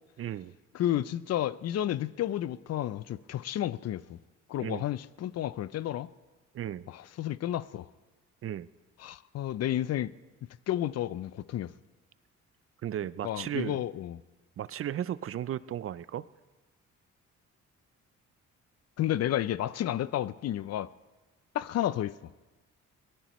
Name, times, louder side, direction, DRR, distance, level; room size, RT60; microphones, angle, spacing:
voice 1, 0.2-0.5 4.6-4.8 6.5-6.9 8.4-8.7 12.8-13.8 14.6-16.3, right 10 dB, 45° right, 0.5 m, -35 dB
voice 2, 0.7-4.2 4.5-6.1 6.9-7.9 9.0-10.1 10.7-11.7 13.2-14.2 19.0-20.9 21.5-22.2, left 12 dB, 55° left, 0.5 m, -31 dB
22.5 x 18.5 x 3.1 m
cardioid pair, 90°, 30 cm